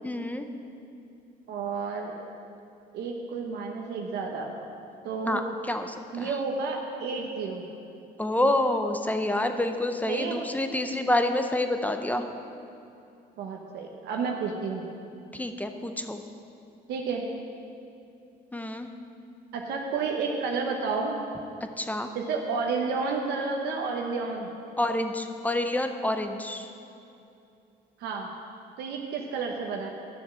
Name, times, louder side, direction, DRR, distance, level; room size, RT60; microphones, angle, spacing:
voice 1, 0.0-0.5 5.3-6.4 8.2-12.3 15.3-16.2 18.5-18.9 21.8-22.1 24.8-26.7, left 1 dB, 10° left, 6 dB, 0.6 m, -28 dB
voice 2, 1.5-2.1 2.9-4.5 5.0-5.4 6.1-7.6 10.1-10.4 13.4-14.8 16.9-17.2 19.5-21.2 22.1-24.5 28.0-28.3 28.8-29.9, right 4 dB, 75° right, 1 dB, 1.0 m, -31 dB
11.0 x 7.2 x 6.2 m, 2.7 s
cardioid pair, 110°, 17 cm